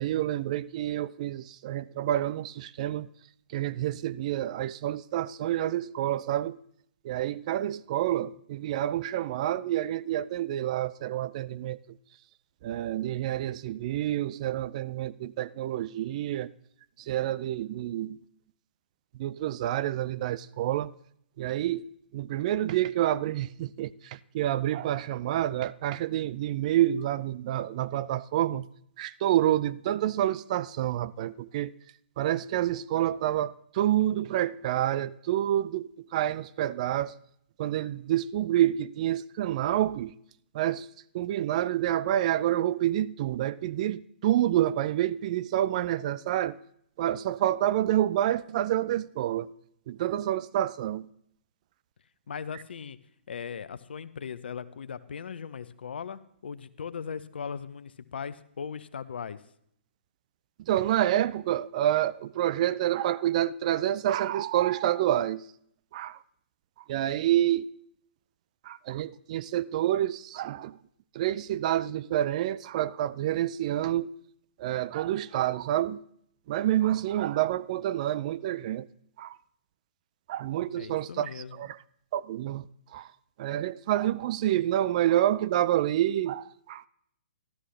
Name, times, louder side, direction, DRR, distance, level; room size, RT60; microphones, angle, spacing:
voice 1, 0.0-3.1 3.5-6.6 7.0-12.0 12.6-16.5 17.0-18.2 19.1-20.9 21.4-28.7 29.0-31.7 32.2-37.1 37.6-40.1 40.5-40.9 41.1-46.6 47.0-49.5 49.9-51.1 60.6-65.5 65.9-66.2 66.9-67.7 68.6-70.8 71.1-74.1 74.6-76.0 76.5-78.9 79.2-79.4 80.3-81.8 82.1-83.1 83.4-86.8, right 12 dB, 40° right, 0.3 m, -28 dB
voice 2, 52.3-53.0 53.3-59.4 80.8-81.6, left 6 dB, 60° left, 0.6 m, -38 dB
13.0 x 12.5 x 3.2 m
figure-of-eight pair, 130°, 6 cm